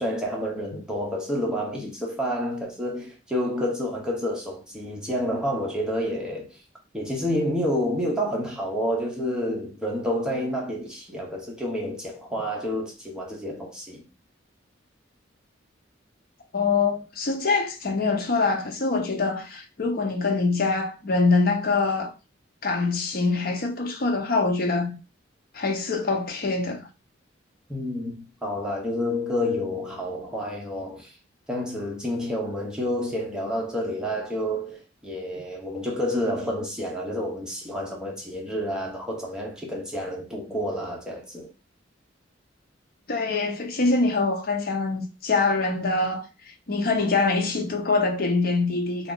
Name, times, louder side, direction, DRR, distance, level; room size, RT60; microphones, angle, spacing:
voice 1, 0.0-6.6 6.9-14.0 27.7-31.1 31.5-41.5, equal, 5° right, 0.8 m, -29 dB
voice 2, 16.5-22.1 22.6-25.0 25.5-26.9 43.1-46.2 46.7-49.1, left 3 dB, 50° left, 0.7 m, -24 dB
2.9 x 2.4 x 3.7 m
head